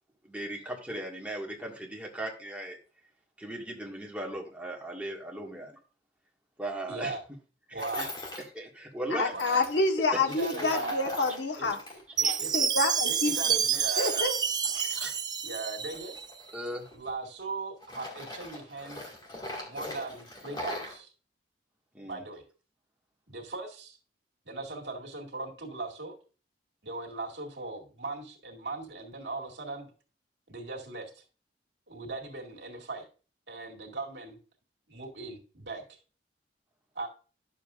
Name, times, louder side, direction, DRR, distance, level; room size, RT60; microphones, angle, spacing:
voice 1, 0.2-2.8 3.4-5.8 6.6-7.2 7.7-8.1 8.5-9.3 12.2-12.3 14.7-15.1 16.5-16.8 21.9-22.2, right 1 dB, 10° right, 1.8 m, -37 dB
voice 2, 6.9-7.2 7.7-8.1 9.3-9.6 10.2-11.7 12.2-12.5 13.1-14.3 15.4-16.2 16.9-19.1 19.6-21.1 22.0-22.4 23.3-24.0 24.5-26.2 26.8-29.9 30.5-31.2 31.9-33.1 33.5-34.4 34.9-35.8 37.0-37.1, right 3 dB, 80° right, 2.1 m, -39 dB
Tools, 7.8-8.4 9.3-12.6 12.9-15.2 15.8-17.4 17.8-21.0, left 2 dB, 25° left, 2.3 m, -41 dB
voice 3, 9.1-11.8 12.5-13.6 14.0-14.4, left 2 dB, 85° left, 1.2 m, -28 dB
Chime, 12.2-16.3, right 7 dB, 25° right, 0.4 m, -29 dB
11.0 x 7.1 x 2.5 m
head